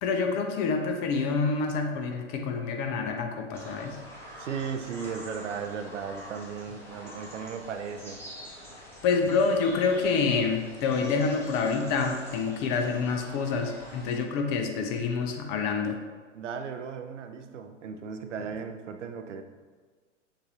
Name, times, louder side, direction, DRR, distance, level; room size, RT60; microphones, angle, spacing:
voice 1, 0.0-4.0 9.0-16.0, left 4 dB, 30° left, 3 dB, 0.5 m, -27 dB
sound 1, 3.5-14.1, equal, 5° left, 1.0 m, -46 dB
voice 2, 4.4-8.2 16.3-19.4, right 6 dB, 75° right, 6 dB, 0.6 m, -36 dB
6.6 x 2.6 x 2.8 m, 1.5 s
figure-of-eight pair, 105°, 37 cm